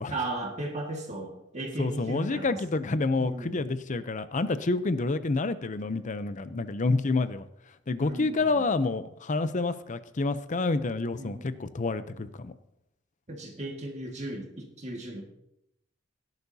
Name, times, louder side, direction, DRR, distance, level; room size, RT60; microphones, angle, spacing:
voice 1, 0.1-2.6 3.2-3.6 8.0-8.7 11.2-11.6 11.9-12.3 13.3-15.2, right 2 dB, 35° right, 1 dB, 1.8 m, -36 dB
voice 2, 1.8-7.5 7.9-12.5, left 3 dB, 40° left, 13 dB, 0.6 m, -28 dB
17.0 x 10.5 x 2.8 m, 0.79 s
head